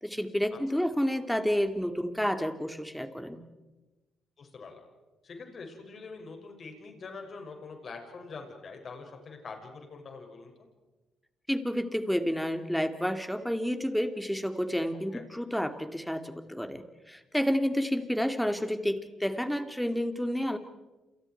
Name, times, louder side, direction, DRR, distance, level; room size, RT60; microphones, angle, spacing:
voice 1, 0.0-3.4 11.5-20.6, equal, ahead, 8 dB, 2.4 m, -30 dB
voice 2, 4.4-4.8 5.2-10.7 15.1-15.2, left 4 dB, 50° left, 3 dB, 6.5 m, -44 dB
29.5 x 28.0 x 4.7 m, 1.1 s
cardioid pair, 90°, 0 cm